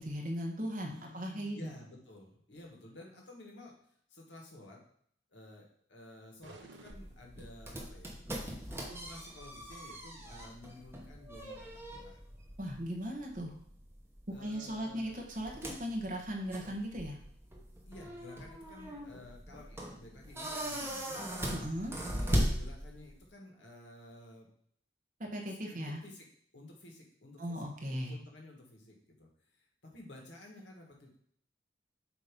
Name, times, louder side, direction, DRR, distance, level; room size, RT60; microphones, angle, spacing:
voice 1, 0.0-1.7 12.6-13.5 14.4-17.2 21.5-21.9 25.2-26.0 27.4-28.2, equal, 45° right, 0 dB, 1.2 m, -38 dB
voice 2, 0.8-4.8 5.3-11.7 12.0-12.2 14.3-15.1 17.9-21.3 22.1-24.5 25.5-26.3 26.5-27.6 27.9-29.7 29.9-31.2, left 1 dB, 80° left, -1 dB, 1.6 m, -53 dB
sound 1, 6.4-7.9, right 2 dB, 80° right, 0.8 m, -56 dB
sound 2, 6.9-23.3, equal, 15° right, 1.1 m, -39 dB
7.7 x 2.9 x 5.2 m, 0.65 s
head